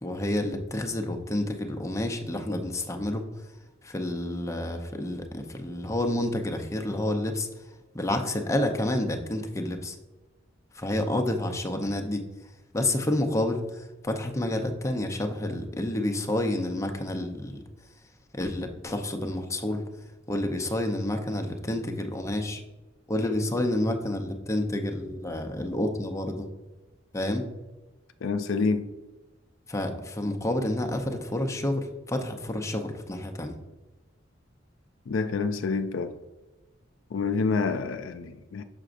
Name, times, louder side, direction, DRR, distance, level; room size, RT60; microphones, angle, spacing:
voice 1, 0.0-3.2 3.8-7.5 7.9-10.0 10.7-12.2 12.7-17.6 18.3-19.8 20.3-22.6 23.1-26.5 27.1-27.5 29.7-33.6, left 1 dB, 15° left, 0.6 m, -29 dB
voice 2, 28.2-28.9 35.1-36.2 37.1-38.6, left 4 dB, 80° left, 0.4 m, -27 dB
6.4 x 5.9 x 2.5 m
head